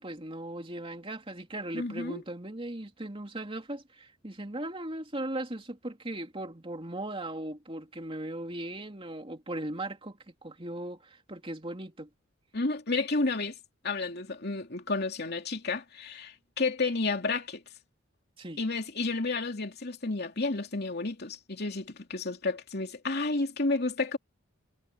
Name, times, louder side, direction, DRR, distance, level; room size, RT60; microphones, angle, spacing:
voice 1, 0.0-12.1 18.4-18.6, right 1 dB, 30° right, 3.0 m, -38 dB
voice 2, 1.7-2.2 12.5-13.6 13.8-17.6 18.6-24.2, left 3 dB, 55° left, 2.9 m, -31 dB
head